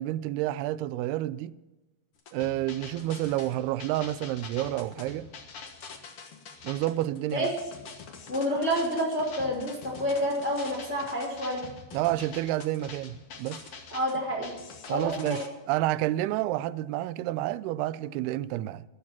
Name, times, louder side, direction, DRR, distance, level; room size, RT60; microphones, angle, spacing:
voice 1, 0.0-1.5 2.3-5.3 6.6-7.5 11.9-13.6 14.9-18.8, right 15 dB, 90° right, 2.6 m, -29 dB
sound 1, 2.2-15.5, left 5 dB, 55° left, 1.6 m, -45 dB
voice 2, 8.3-11.6 13.9-14.5 14.9-15.4, equal, 20° left, 2.5 m, -29 dB
13.0 x 12.0 x 5.9 m
omnidirectional pair, 4.5 m